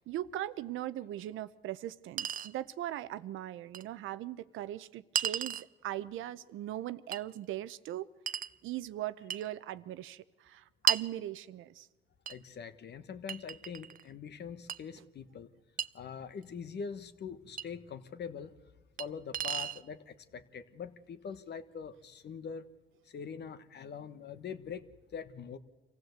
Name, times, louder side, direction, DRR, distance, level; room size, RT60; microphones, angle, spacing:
voice 1, 0.0-8.1 8.6-11.9, right 13 dB, 85° right, 15 dB, 0.8 m, -39 dB
Chink clink, 1.2-1.3 2.2-2.5 3.7-3.8 5.2-5.7 7.1-7.2 8.3-8.5 9.3-9.5 10.9-11.1 12.3-12.4 13.3-14.0 14.7-14.8 15.8-15.9 17.6-17.7 19.0-19.1 19.3-19.8, right 8 dB, 45° right, 0.6 m, -33 dB
voice 2, 12.3-15.5 15.9-18.5 19.0-22.7 23.1-25.6, left 6 dB, 60° left, 12 dB, 1.3 m, -43 dB
25.5 x 16.0 x 8.0 m, 1.2 s
cardioid pair, 90°, 20 cm